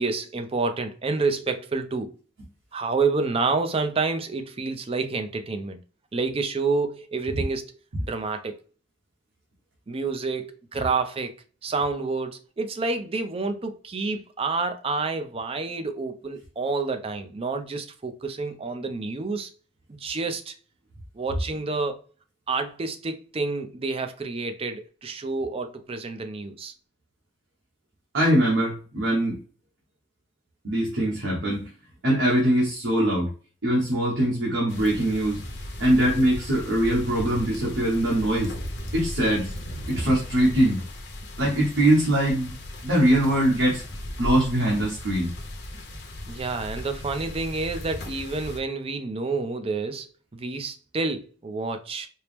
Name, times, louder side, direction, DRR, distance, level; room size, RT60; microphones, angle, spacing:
voice 1, 0.0-2.1 2.7-5.8 6.1-8.6 9.9-19.5 20.0-20.5 21.1-22.0 22.5-26.7 46.3-50.1 50.3-52.1, right 3 dB, 30° right, 0.4 m, -29 dB
voice 2, 28.1-29.4 30.6-31.6 32.0-33.3 33.6-35.4 35.8-38.5 38.9-40.8 41.4-42.5 42.8-43.8 44.2-45.3, right 1 dB, 75° right, 1.0 m, -22 dB
sound 1, 34.7-48.6, left 1 dB, 60° left, 0.7 m, -37 dB
4.4 x 2.0 x 3.3 m
head